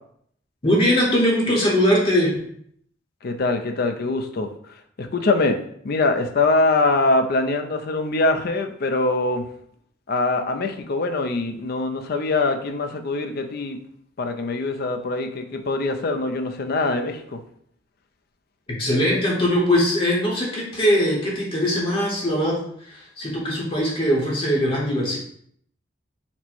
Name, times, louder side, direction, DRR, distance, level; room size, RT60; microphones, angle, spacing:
voice 1, 0.6-2.5 18.7-25.2, equal, 30° left, -3 dB, 0.8 m, -21 dB
voice 2, 3.2-4.5 5.0-5.6 5.8-9.4 10.1-13.8 14.2-17.4, left 3 dB, 50° left, 6 dB, 0.4 m, -23 dB
4.3 x 2.1 x 4.3 m, 0.66 s
head